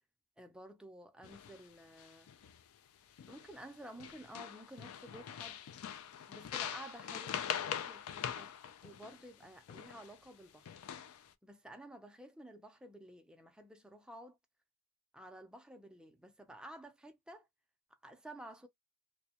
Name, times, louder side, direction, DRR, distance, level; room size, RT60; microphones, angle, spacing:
voice 1, 0.4-2.3 3.3-5.6 6.3-8.5 8.8-10.7 11.4-14.4 15.1-17.5 18.0-18.7, right 1 dB, 5° right, 0.4 m, -52 dB
sound 1, 1.2-1.6 2.0-2.6 3.2-3.7 4.0-10.1 10.7-11.3, left 9 dB, 90° left, 0.3 m, -43 dB
2.2 x 2.1 x 2.6 m
head